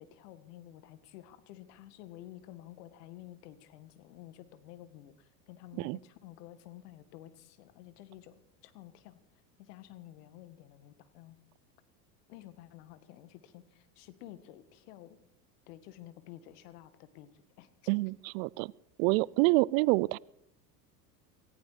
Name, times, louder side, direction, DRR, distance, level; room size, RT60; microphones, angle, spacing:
voice 1, 0.0-9.2 9.6-11.4 12.3-15.2 15.7-17.7, left 13 dB, 65° left, 13 dB, 1.7 m, -51 dB
voice 2, 17.9-18.7 19.0-20.2, right 23 dB, 55° right, 25 dB, 0.5 m, -27 dB
18.0 x 15.0 x 4.9 m, 0.74 s
hypercardioid pair, 95°, 50 cm